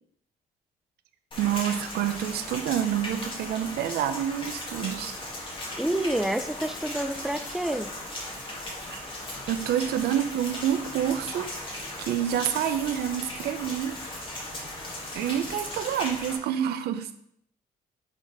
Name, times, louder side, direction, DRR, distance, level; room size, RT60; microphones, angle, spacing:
Rain, 1.3-16.4, left 1 dB, 30° left, 1.9 m, -37 dB
voice 1, 1.4-5.2 8.9-9.1 9.5-14.0 15.1-17.1, right 10 dB, 85° right, 9 dB, 0.7 m, -28 dB
voice 2, 5.8-7.9, right 1 dB, ahead, 9 dB, 0.4 m, -28 dB
6.4 x 4.1 x 4.8 m, 0.68 s
cardioid pair, 140°, 16 cm